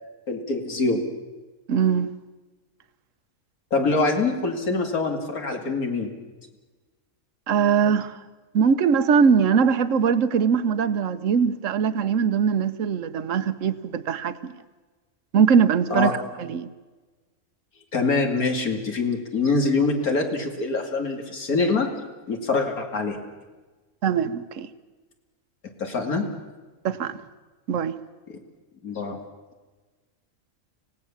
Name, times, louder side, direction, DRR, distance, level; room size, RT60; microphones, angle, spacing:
voice 1, 0.3-1.0 3.7-6.1 15.9-16.2 17.9-21.9 22.3-23.2 25.8-26.3 28.3-28.4 28.8-29.2, left 3 dB, 80° left, 2.8 m, -24 dB
voice 2, 1.7-2.1 7.5-8.2 8.5-14.5 15.3-16.1 16.4-16.7 24.0-24.7 26.8-27.2 27.7-28.0, right 6 dB, 65° right, 1.2 m, -21 dB
25.5 x 17.5 x 7.2 m
omnidirectional pair, 1.5 m